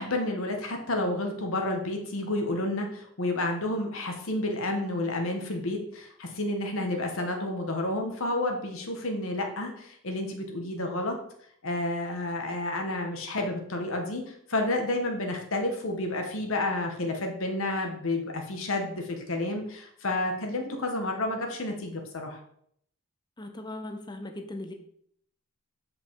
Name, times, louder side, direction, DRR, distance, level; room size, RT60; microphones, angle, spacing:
voice 1, 0.0-11.2 11.6-22.4, left 2 dB, 65° left, 2 dB, 1.2 m, -30 dB
voice 2, 23.4-24.7, left 1 dB, 20° left, 5 dB, 0.7 m, -38 dB
7.8 x 5.3 x 4.6 m, 0.68 s
head